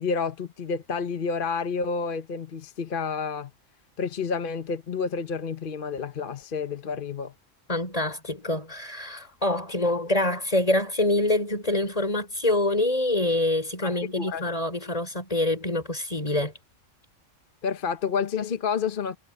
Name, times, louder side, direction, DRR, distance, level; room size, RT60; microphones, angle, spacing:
voice 1, 0.0-3.5 4.0-7.3 13.8-14.4 17.6-19.2, left 5 dB, 45° left, 1.1 m, -29 dB
voice 2, 7.7-16.5, left 1 dB, 30° left, 5.4 m, -25 dB
omnidirectional pair, 1.3 m